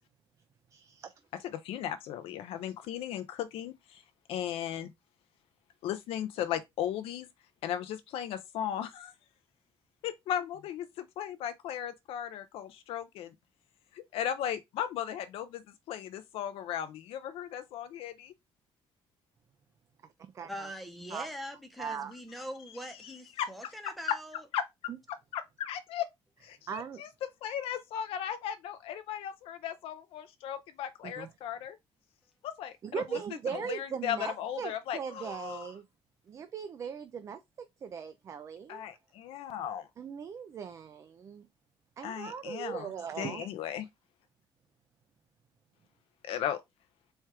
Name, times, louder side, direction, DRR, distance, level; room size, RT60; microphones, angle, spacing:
voice 1, 0.7-1.1 20.3-20.7 21.1-21.3 21.8-22.1 26.7-27.0 31.0-31.3 32.8-35.8 36.3-38.8 40.0-41.4 42.0-43.5, right 7 dB, 30° right, 0.3 m, -39 dB
voice 2, 1.5-4.0 4.3-4.9 5.8-7.3 7.6-9.1 10.0-13.3 13.9-18.3 22.9-23.5 24.1-24.2 24.5-24.6 25.3-26.1 26.4-31.8 32.4-32.7 33.1-33.2 33.5-35.7 38.7-39.9 42.0-42.9 43.2-43.9 46.2-46.6, left 10 dB, 75° left, 0.4 m, -36 dB
voice 3, 20.5-24.4, equal, ahead, 0.7 m, -42 dB
4.4 x 2.3 x 4.6 m
cardioid pair, 175°, 10 cm